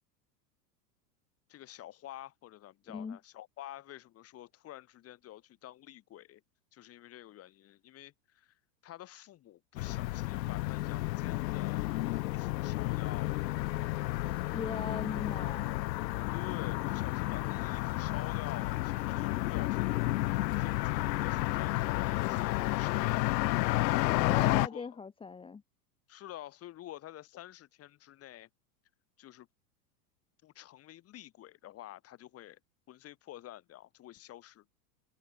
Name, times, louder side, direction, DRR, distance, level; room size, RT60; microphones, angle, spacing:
voice 1, 1.5-6.4 6.7-8.5 8.8-11.9 12.3-13.5 16.3-20.0 20.5-23.5 24.4-24.9 26.1-28.5 29.2-29.5 30.4-32.6 32.9-34.6, left 13 dB, 30° left, 5.2 m, -49 dB
voice 2, 2.9-3.2 14.2-15.8 24.0-25.6, left 5 dB, 10° left, 1.8 m, -40 dB
sound 1, 9.8-24.7, left 18 dB, 80° left, 0.6 m, -31 dB
supercardioid pair, 150°, 50 cm